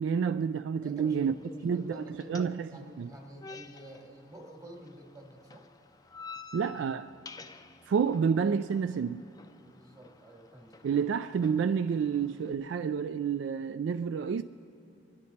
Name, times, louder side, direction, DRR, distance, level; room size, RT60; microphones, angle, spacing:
voice 1, 0.0-1.3 1.6-2.7 3.0-3.1 6.5-7.1 7.9-9.2 10.8-14.4, right 6 dB, 70° right, 0.3 m, -29 dB
voice 2, 0.8-5.7 9.6-10.9, right 1 dB, 20° right, 1.7 m, -48 dB
sound 1, 1.0-12.5, left 4 dB, 20° left, 0.4 m, -51 dB
26.5 x 10.5 x 4.1 m
head